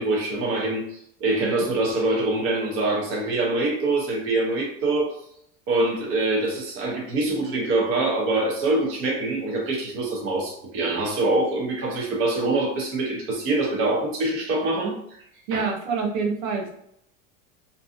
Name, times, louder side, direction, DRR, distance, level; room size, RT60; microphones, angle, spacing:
voice 1, 0.0-5.2 5.7-15.2 15.5-15.7, right 2 dB, 35° right, -2 dB, 0.7 m, -24 dB
voice 2, 15.5-16.8, right 5 dB, 80° right, 2 dB, 0.7 m, -26 dB
2.7 x 2.3 x 2.5 m, 0.70 s
supercardioid pair, 155°, 38 cm